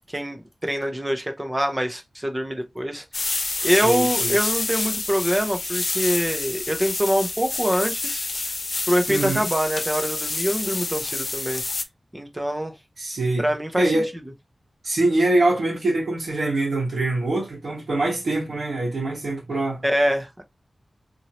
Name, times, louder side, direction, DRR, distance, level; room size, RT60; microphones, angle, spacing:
voice 1, 0.1-3.0 3.6-8.3 8.9-11.6 12.1-12.7 13.4-14.0 19.8-20.4, equal, 15° right, 0.7 m, -24 dB
sound 1, 3.1-11.8, left 3 dB, 45° left, 0.4 m, -28 dB
voice 2, 3.6-4.3 9.1-9.5 13.0-13.4 13.8-14.1 14.8-19.8, right 2 dB, 75° right, 1.3 m, -24 dB
2.9 x 2.7 x 2.8 m
wide cardioid pair, 100°, 0 cm